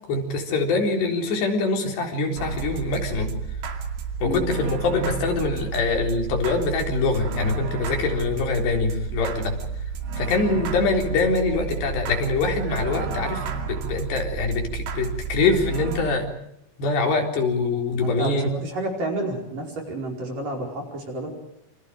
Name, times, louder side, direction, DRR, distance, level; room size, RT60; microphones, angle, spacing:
voice 1, 0.1-3.3 4.2-9.6 10.1-16.3 16.8-18.5, left 3 dB, 65° left, 2 dB, 5.9 m, -24 dB
sound 1, 2.4-16.1, right 6 dB, 75° right, 4.7 m, -31 dB
voice 2, 18.0-21.3, right 1 dB, 45° right, 1 dB, 6.3 m, -30 dB
28.5 x 26.5 x 5.0 m, 0.78 s
omnidirectional pair, 5.4 m